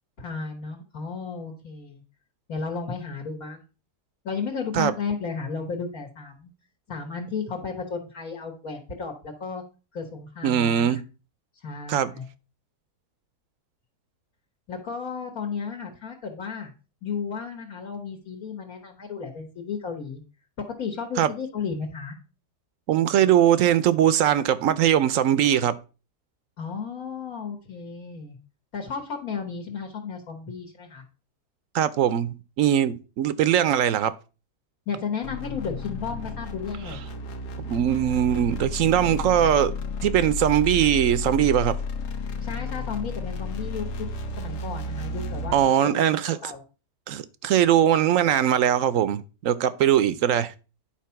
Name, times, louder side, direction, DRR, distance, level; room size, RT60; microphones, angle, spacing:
voice 1, 0.2-2.0 2.5-3.6 4.2-6.5 6.9-9.6 9.9-11.0 11.6-12.3 14.7-16.7 17.0-20.2 20.7-22.2 26.6-28.4 28.7-31.0 34.9-37.0 42.4-44.1 44.4-46.0 46.4-46.6, left 5 dB, 60° left, 1.9 m, -33 dB
voice 2, 10.4-11.0 11.9-12.1 21.2-21.3 22.9-25.8 31.7-34.1 37.7-39.7 40.0-41.8 45.5-46.5 47.1-50.5, right 10 dB, 65° right, 0.9 m, -21 dB
sound 1, 35.2-45.7, left 3 dB, 85° left, 1.7 m, -32 dB
10.5 x 4.2 x 5.8 m
omnidirectional pair, 1.7 m